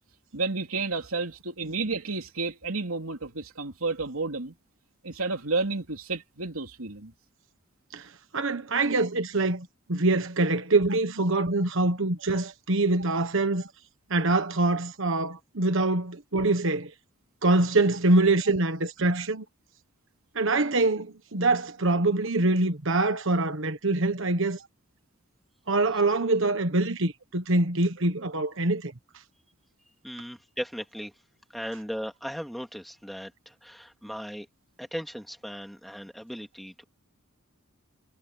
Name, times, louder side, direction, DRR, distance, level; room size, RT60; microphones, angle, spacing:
voice 1, 0.3-4.5 5.0-7.1, right 3 dB, 80° right, 3.1 m, -31 dB
voice 2, 7.9-13.6 14.1-16.9 17.4-19.4 20.3-24.6 25.7-28.9, right 2 dB, 60° right, 1.4 m, -24 dB
voice 3, 30.0-31.1 31.5-34.5 34.8-36.8, equal, ahead, 3.0 m, -37 dB
head